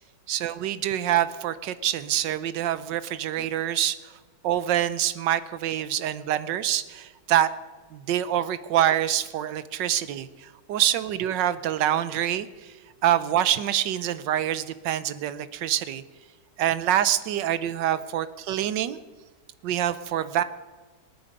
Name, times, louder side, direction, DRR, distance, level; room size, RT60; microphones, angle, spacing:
voice 1, 0.3-4.1 4.4-7.5 7.9-12.8 13.0-16.0 16.6-19.0 19.6-20.4, right 11 dB, 85° right, 14 dB, 1.4 m, -26 dB
25.5 x 9.4 x 5.2 m, 1.3 s
omnidirectional pair, 1.9 m